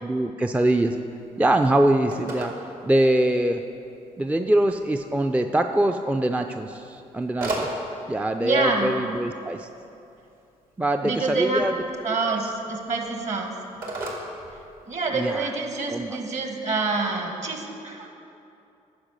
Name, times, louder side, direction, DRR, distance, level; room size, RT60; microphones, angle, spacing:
voice 1, 0.0-1.0 1.4-2.5 2.8-3.6 4.2-7.7 8.1-9.7 10.8-11.7 12.2-12.3 15.1-15.5 15.9-16.2, right 1 dB, 10° right, 5 dB, 0.4 m, -23 dB
Telephone, 0.8-15.3, right 1 dB, 65° right, 1.9 m, -39 dB
voice 2, 8.4-8.9 11.0-11.6 12.0-13.5 14.9-18.1, right 3 dB, 50° right, 3 dB, 1.6 m, -26 dB
10.5 x 4.8 x 6.3 m, 2.7 s
supercardioid pair, 55°, 16 cm